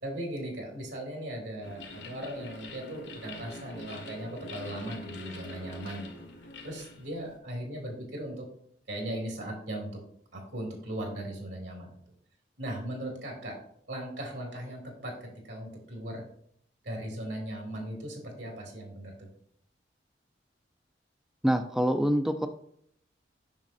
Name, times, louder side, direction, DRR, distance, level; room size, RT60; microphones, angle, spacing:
voice 1, 0.0-6.1 6.6-8.5 8.9-9.9 10.3-11.9 12.6-13.5 13.9-16.2 16.8-19.3, right 1 dB, 75° right, 1 dB, 2.4 m, -38 dB
sound 1, 1.6-7.4, left 2 dB, 85° left, 1.5 m, -44 dB
voice 2, 21.4-22.5, equal, 5° right, 6 dB, 0.3 m, -25 dB
7.2 x 6.1 x 2.6 m, 0.66 s
head